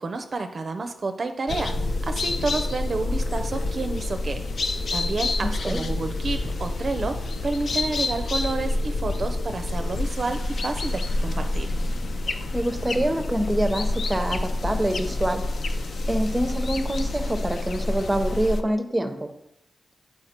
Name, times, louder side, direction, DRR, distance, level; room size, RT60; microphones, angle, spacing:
voice 1, 0.0-4.4 4.9-11.8, right 3 dB, 45° right, 6 dB, 0.5 m, -30 dB
sound 1, 1.5-18.6, left 2 dB, 60° left, 0.5 m, -28 dB
voice 2, 5.4-5.8 12.3-15.4 16.1-19.3, right 1 dB, 10° right, 8 dB, 0.7 m, -26 dB
7.9 x 4.6 x 4.3 m, 0.80 s
wide cardioid pair, 110°, 0 cm